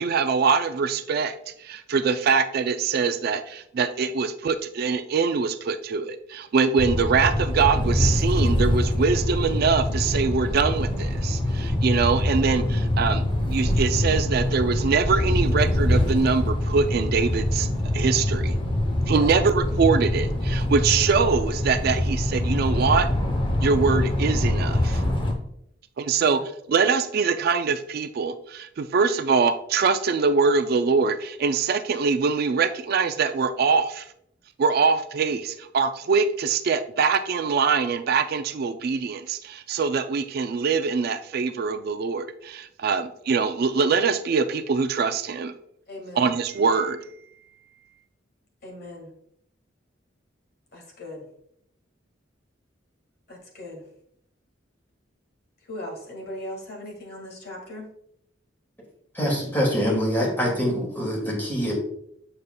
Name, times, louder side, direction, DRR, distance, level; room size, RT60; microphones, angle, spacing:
voice 1, 0.0-1.3 1.6-13.2 13.5-17.7 17.9-18.5 19.1-23.1 23.6-25.0 26.0-26.4 26.7-34.1 34.6-45.5 46.1-47.0, right 5 dB, 55° right, 10 dB, 0.3 m, -23 dB
sound 1, 6.8-25.3, left 1 dB, 25° left, 0.8 m, -24 dB
voice 2, 45.9-46.3 48.6-49.1 50.7-51.2 53.3-53.8 55.7-57.9, left 1 dB, 55° left, -1 dB, 1.8 m, -38 dB
voice 3, 59.1-61.7, equal, 10° left, -3 dB, 2.1 m, -24 dB
7.0 x 6.5 x 2.2 m, 0.73 s
head